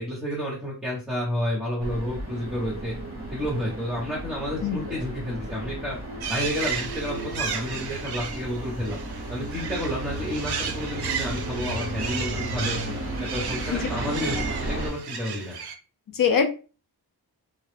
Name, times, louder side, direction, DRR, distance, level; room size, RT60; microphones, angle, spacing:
voice 1, 0.0-2.9 3.3-6.0 6.3-9.0 9.3-12.8 13.2-15.5, left 1 dB, ahead, -5 dB, 0.9 m, -30 dB
sound 1, 1.8-14.9, right 1 dB, 30° right, 0.9 m, -34 dB
sound 2, 6.2-15.7, right 6 dB, 65° right, 0.5 m, -34 dB
voice 2, 16.1-16.5, left 6 dB, 50° left, 6 dB, 0.5 m, -24 dB
2.2 x 2.0 x 3.1 m, 0.34 s
wide cardioid pair, 75°, 43 cm